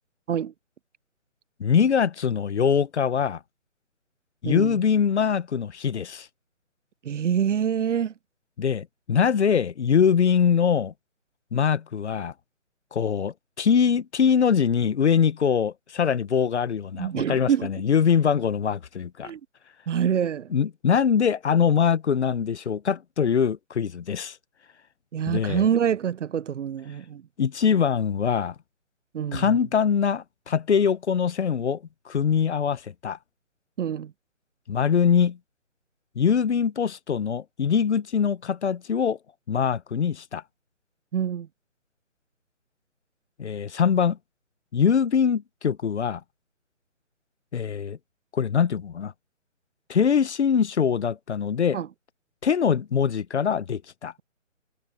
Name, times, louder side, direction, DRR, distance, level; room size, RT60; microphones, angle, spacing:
voice 1, 1.6-3.4 4.4-6.3 8.6-10.9 11.5-12.3 12.9-19.3 20.5-24.4 25.3-25.7 27.4-28.5 29.3-33.2 34.7-35.4 36.2-39.2 39.5-40.4 43.4-44.2 44.7-46.2 47.5-48.0 48.3-49.1 49.9-51.8 52.4-54.1, left 7 dB, 60° left, 1.0 m, -23 dB
voice 2, 4.4-4.8 7.0-8.1 17.0-17.7 19.2-19.4 19.9-20.5 25.1-27.2 29.1-29.6 33.8-34.1 41.1-41.5 51.7-51.9, right 8 dB, 65° right, 0.6 m, -26 dB
figure-of-eight pair, 155°, 39 cm